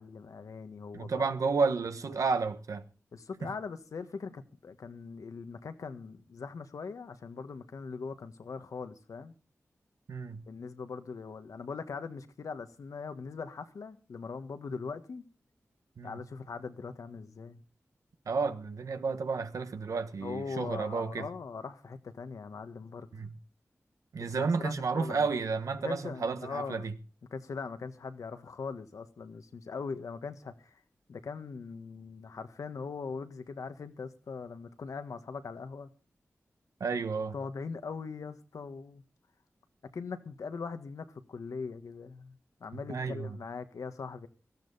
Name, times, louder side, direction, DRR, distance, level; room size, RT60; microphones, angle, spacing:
voice 1, 0.0-1.3 3.1-9.3 10.5-15.2 16.0-17.6 20.2-23.1 24.2-25.3 25.8-26.9 27.3-30.8 31.1-35.9 37.3-39.0 39.9-44.3, left 5 dB, 85° left, 1.4 m, -41 dB
voice 2, 0.9-2.8 10.1-10.4 16.0-16.2 18.3-21.3 23.1-23.3 24.1-26.9 36.8-37.3 42.9-43.4, right 4 dB, 85° right, 1.3 m, -31 dB
18.0 x 14.0 x 4.1 m
cardioid pair, 45°, 5 cm